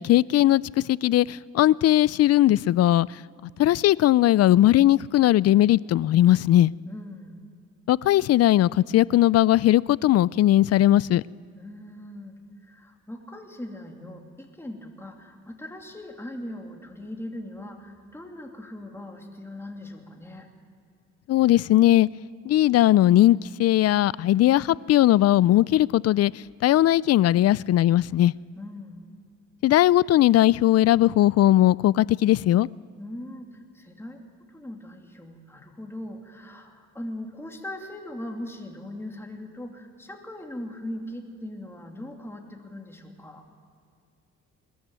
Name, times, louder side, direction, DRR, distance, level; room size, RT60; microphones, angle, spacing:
voice 1, 0.0-3.2 3.6-6.7 7.9-11.2 21.3-22.1 22.4-26.3 26.6-28.3 29.6-32.7, left 14 dB, 55° left, 0.4 m, -19 dB
voice 2, 6.8-7.4 11.6-20.5 28.4-29.0 33.0-34.2 34.5-43.4, left 1 dB, 10° left, 2.8 m, -40 dB
21.0 x 14.0 x 9.1 m
cardioid pair, 90°, 30 cm